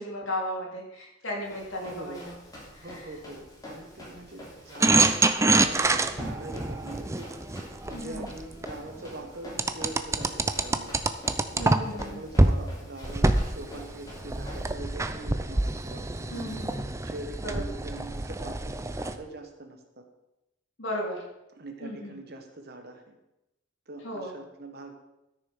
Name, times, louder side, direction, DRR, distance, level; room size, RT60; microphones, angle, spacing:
voice 1, 0.0-2.3 2.7-2.9 6.2-6.3 7.9-8.3 11.6-12.2 16.3-16.8 17.4-17.6 20.8-21.2 21.8-22.1 24.0-24.3, left 1 dB, 70° left, -3 dB, 3.4 m, -35 dB
Run, 1.4-14.7, left 1 dB, 20° left, 3.2 m, -47 dB
voice 2, 1.7-2.3 2.8-7.3 7.6-11.0 11.5-20.0 21.6-23.1 23.9-24.9, right 2 dB, 50° right, 5 dB, 1.5 m, -43 dB
sound 1, 4.8-8.7 9.6-12.0 12.4-12.6 13.0-19.1, right 2 dB, 15° right, 0.5 m, -26 dB
13.0 x 6.7 x 5.5 m, 0.92 s
head